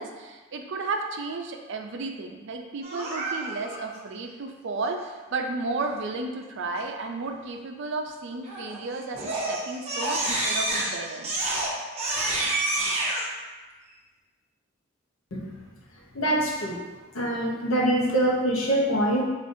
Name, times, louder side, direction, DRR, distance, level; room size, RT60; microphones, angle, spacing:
voice 1, 0.0-11.3, right 3 dB, 60° right, 4 dB, 0.4 m, -33 dB
Crying sobbing, 2.8-3.8 8.4-8.8 9.1-13.2, right 2 dB, 30° right, 0.7 m, -28 dB
voice 2, 16.1-16.8 17.1-19.2, right 1 dB, 75° left, -2 dB, 0.7 m, -24 dB
5.0 x 2.5 x 2.6 m, 1.3 s
head